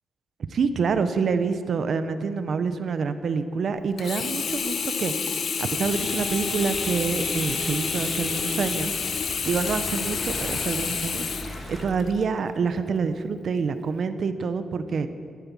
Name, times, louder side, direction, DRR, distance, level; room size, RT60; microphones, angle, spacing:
voice 1, 0.5-5.1 5.6-8.9 9.4-11.3 11.7-15.1, right 5 dB, 55° right, 11 dB, 0.7 m, -27 dB
Sink (filling or washing), 4.0-12.2 12.8-12.9, left 6 dB, 50° left, 0.7 m, -29 dB
sound 1, 5.7-11.8, right 1 dB, 25° right, 2.0 m, -37 dB
12.0 x 9.7 x 7.2 m, 2.2 s
cardioid pair, 130°, 0 cm